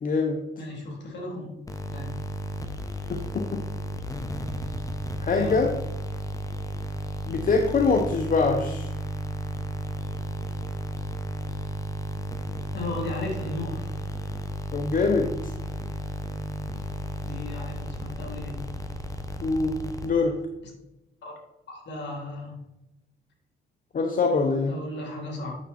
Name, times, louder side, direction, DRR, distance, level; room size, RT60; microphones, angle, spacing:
voice 1, 0.0-0.4 3.1-3.6 5.2-5.8 7.3-8.9 14.7-15.5 19.4-20.4 23.9-24.8, left 4 dB, 45° left, 4 dB, 0.9 m, -24 dB
voice 2, 0.6-1.5 1.8-2.1 5.3-5.6 12.7-13.9 17.2-18.6 21.2-21.3 21.7-22.5 24.7-25.6, left 2 dB, 60° left, 0 dB, 3.3 m, -35 dB
sound 1, 1.7-20.4, right 1 dB, 15° left, 1.1 m, -33 dB
8.9 x 6.8 x 4.3 m, 0.96 s
cardioid pair, 90°, 20 cm